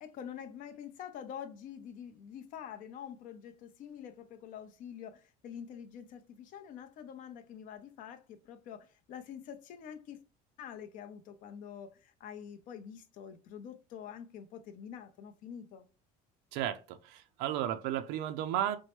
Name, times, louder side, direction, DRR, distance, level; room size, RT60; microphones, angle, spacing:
voice 1, 0.0-10.2 10.6-15.8, left 8 dB, 50° left, 0.6 m, -46 dB
voice 2, 16.5-18.8, right 11 dB, 85° right, 0.4 m, -34 dB
4.4 x 2.1 x 2.9 m
cardioid pair, 150°, 17 cm